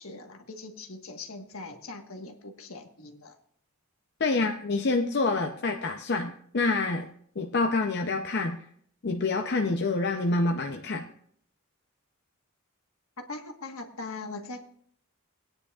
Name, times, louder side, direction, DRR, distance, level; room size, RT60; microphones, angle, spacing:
voice 1, 0.0-3.4 13.2-14.6, left 3 dB, 75° left, 4 dB, 1.5 m, -41 dB
voice 2, 4.2-7.1 7.4-8.6 9.0-11.1, left 3 dB, 50° left, 3 dB, 0.7 m, -27 dB
19.5 x 9.8 x 2.4 m, 0.64 s
head